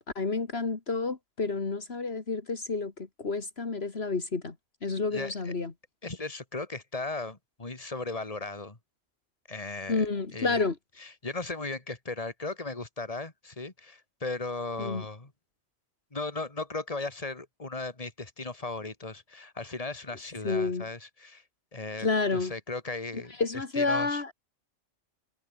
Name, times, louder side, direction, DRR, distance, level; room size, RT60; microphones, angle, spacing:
voice 1, 0.2-4.5 4.8-5.7 9.9-10.8 14.8-15.1 20.4-20.9 22.0-22.5 23.4-24.3, left 4 dB, 65° left, 2.3 m, -29 dB
voice 2, 5.1-5.5 6.0-8.8 9.5-10.0 10.3-10.6 11.0-15.3 16.1-21.4 21.7-23.3 23.7-24.2, left 3 dB, 30° left, 2.7 m, -37 dB
omnidirectional pair, 1.2 m